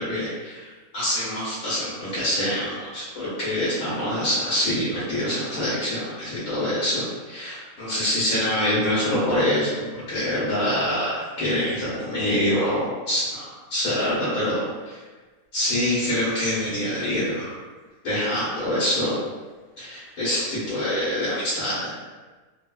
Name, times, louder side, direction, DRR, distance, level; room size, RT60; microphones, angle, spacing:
voice 1, 0.0-13.4 13.7-15.0 15.5-17.5 18.0-19.2 19.8-21.9, left 1 dB, 75° left, -10 dB, 1.3 m, -25 dB
3.2 x 2.1 x 2.2 m, 1.3 s
omnidirectional pair, 1.5 m